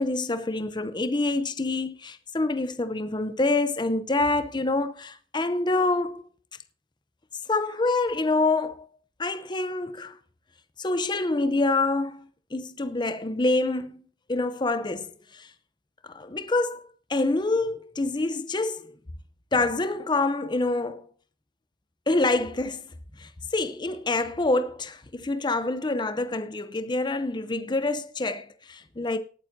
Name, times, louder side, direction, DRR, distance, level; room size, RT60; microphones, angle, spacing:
voice 1, 0.0-6.3 7.5-8.9 9.2-10.2 10.8-15.5 16.0-18.9 19.5-21.0 22.1-22.9 23.2-29.2, left 2 dB, 25° left, 0.7 m, -26 dB
18.5 x 8.9 x 2.7 m
head